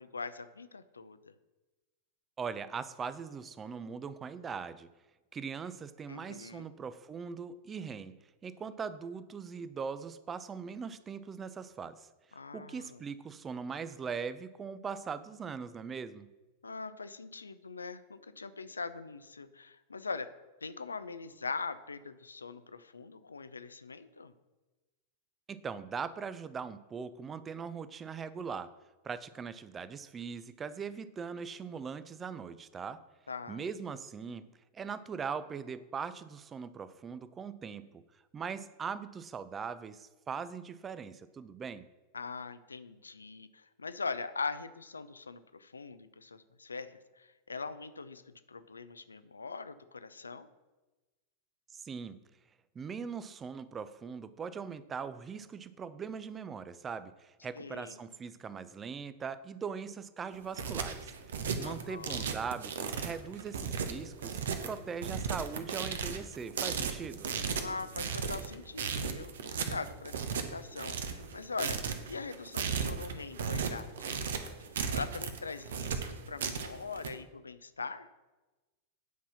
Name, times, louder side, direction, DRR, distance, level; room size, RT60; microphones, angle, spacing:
voice 1, 0.0-1.3 6.1-6.7 12.3-13.0 16.6-20.3 20.6-24.3 33.3-33.6 42.1-50.5 57.6-58.0 61.6-62.3 67.6-71.8 72.1-74.3 74.9-78.1, left 4 dB, 75° left, 13 dB, 0.5 m, -42 dB
voice 2, 2.4-4.9 5.3-16.3 25.5-28.7 29.0-33.0 33.5-34.5 34.7-38.0 38.3-41.9 51.7-52.2 52.7-61.1 61.6-67.3, right 6 dB, 20° right, 15 dB, 0.5 m, -40 dB
sound 1, 60.3-77.1, right 6 dB, 60° right, 1.0 m, -35 dB
9.4 x 5.6 x 6.0 m, 1.2 s
figure-of-eight pair, 90°, 0 cm